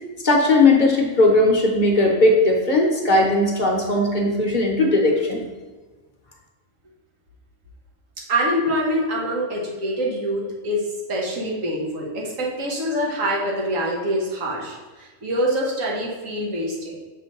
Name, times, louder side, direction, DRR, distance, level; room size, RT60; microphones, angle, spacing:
voice 1, 0.2-5.5, left 2 dB, 40° left, 0 dB, 0.9 m, -18 dB
voice 2, 8.3-16.9, equal, 80° right, -3 dB, 1.6 m, -25 dB
6.6 x 3.2 x 5.3 m, 1.3 s
omnidirectional pair, 1.3 m